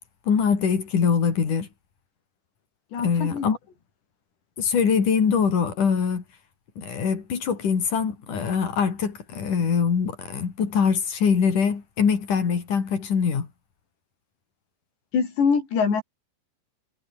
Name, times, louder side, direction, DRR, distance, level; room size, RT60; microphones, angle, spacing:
voice 1, 0.3-1.7 3.0-3.6 4.6-6.2 6.8-13.5, left 6 dB, 50° left, 4.8 m, -23 dB
voice 2, 2.9-3.5 15.1-16.0, left 5 dB, 80° left, 7.9 m, -23 dB
omnidirectional pair, 4.9 m